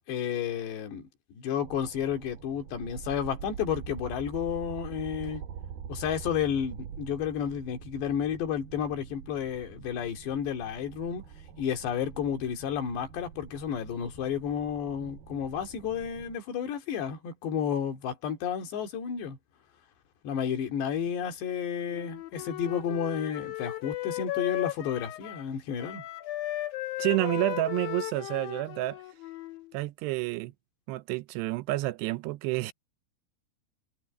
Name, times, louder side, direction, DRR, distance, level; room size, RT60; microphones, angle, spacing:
voice 1, 0.1-5.4 5.9-11.2 11.6-19.4 20.2-26.0, left 8 dB, 85° left, 4.8 m, -31 dB
sound 1, 1.6-16.4, right 8 dB, 65° right, 3.7 m, -45 dB
Wind instrument woodwind instrument, 21.9-25.5 25.8-29.7, left 16 dB, 70° left, 2.7 m, -36 dB
voice 2, 27.0-29.0 29.7-30.5 30.9-32.7, right 18 dB, 85° right, 2.8 m, -29 dB
omnidirectional pair, 4.8 m